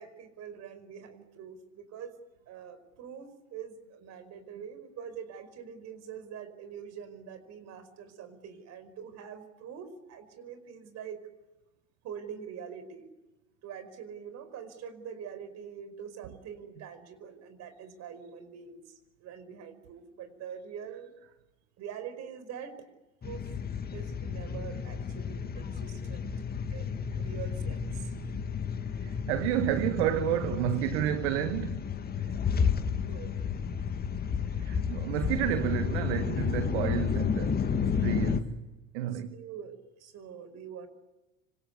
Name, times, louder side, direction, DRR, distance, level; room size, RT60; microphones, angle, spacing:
voice 1, 0.0-2.2 2.5-11.3 12.0-13.1 13.6-21.1 21.8-22.9 23.2-23.5 23.9-26.3 26.7-28.1 33.0-33.3 39.1-40.9, right 7 dB, 40° right, 5.1 m, -44 dB
sound 1, 23.2-38.4, left 7 dB, 25° left, 1.9 m, -32 dB
voice 2, 29.0-31.8 34.6-38.7 38.9-39.4, right 12 dB, 55° right, 1.6 m, -30 dB
26.0 x 26.0 x 8.5 m
figure-of-eight pair, 75°, 39 cm